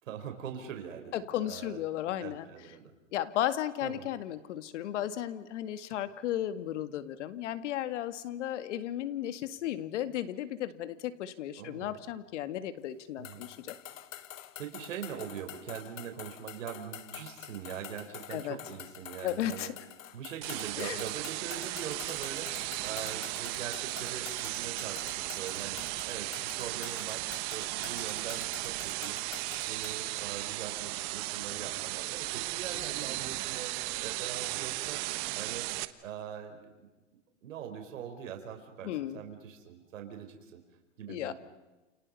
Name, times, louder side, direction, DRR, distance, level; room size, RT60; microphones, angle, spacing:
voice 1, 0.0-1.8 2.2-2.8 3.8-4.1 11.6-11.9 13.2-13.4 14.6-19.7 20.1-27.2 27.5-29.2 29.7-33.7 34.0-35.0 35.3-35.7 36.0-36.9 37.4-40.6 41.0-41.3, right 8 dB, 80° right, 5 dB, 5.1 m, -42 dB
voice 2, 1.1-2.5 3.1-13.8 18.3-18.6 19.2-19.7 20.8-21.0 38.8-39.2 41.1-41.3, left 12 dB, 65° left, 11 dB, 2.2 m, -34 dB
sound 1, 13.2-30.0, left 11 dB, 85° left, 1.8 m, -47 dB
sound 2, 20.4-35.8, right 20 dB, 40° right, 1.2 m, -36 dB
29.5 x 29.5 x 5.5 m, 1.1 s
supercardioid pair, 150°, 38 cm